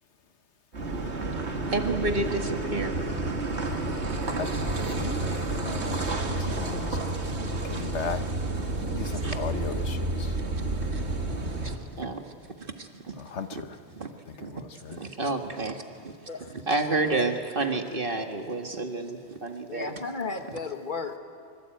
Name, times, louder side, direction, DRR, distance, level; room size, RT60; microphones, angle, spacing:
Car passing by / Idling / Accelerating revving vroom, 0.7-11.8, right 2 dB, 75° right, 2.4 m, -30 dB
voice 1, 1.7-3.0 9.1-9.4 10.8-11.0 11.3-13.1 13.5-13.6 13.9-14.5 14.9-19.9, right 2 dB, 50° right, 5 dB, 2.1 m, -31 dB
voice 2, 5.0-7.0 7.6-8.2 8.6-10.4 13.2-13.8 14.3-15.0, left 6 dB, 85° left, 10 dB, 1.5 m, -37 dB
voice 3, 19.7-21.2, left 4 dB, 45° left, 6 dB, 1.9 m, -34 dB
25.0 x 25.0 x 9.1 m, 2.3 s
omnidirectional pair, 1.1 m